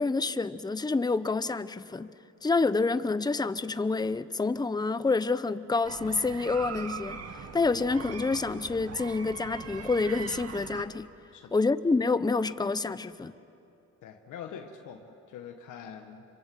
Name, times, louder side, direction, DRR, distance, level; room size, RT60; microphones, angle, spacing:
voice 1, 0.0-2.1 2.4-11.1 11.5-13.3, left 3 dB, 15° left, 14 dB, 0.8 m, -28 dB
sound 1, 5.8-10.8, right 6 dB, 55° right, 1.8 m, -41 dB
voice 2, 14.0-16.2, left 7 dB, 85° left, 4 dB, 1.6 m, -44 dB
26.5 x 25.5 x 7.9 m, 2.7 s
cardioid pair, 90°, 30 cm